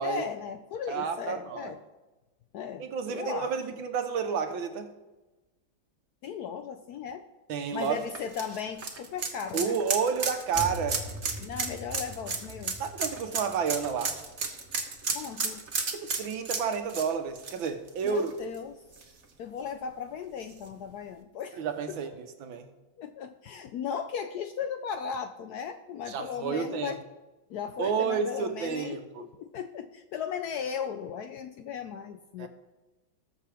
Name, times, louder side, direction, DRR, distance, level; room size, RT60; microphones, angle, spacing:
voice 1, 0.0-1.8 2.5-3.5 6.2-7.2 7.7-9.7 11.4-12.8 15.1-15.6 18.0-18.8 19.4-21.6 21.9-22.1 23.0-27.0 27.5-32.5, left 7 dB, 70° left, 8 dB, 0.9 m, -37 dB
voice 2, 0.9-1.8 2.8-4.9 7.5-8.0 9.5-11.1 12.8-14.2 15.9-18.3 21.6-22.7 26.1-27.0 27.8-29.2 32.4-32.5, right 6 dB, 80° right, 7 dB, 1.8 m, -30 dB
sound 1, 7.8-18.6 18.9-19.0 20.5-20.6, right 4 dB, 40° right, 1.3 m, -33 dB
sound 2, 10.5-16.1, left 1 dB, 5° right, 1.6 m, -43 dB
20.0 x 6.7 x 3.5 m, 1.1 s
omnidirectional pair, 2.1 m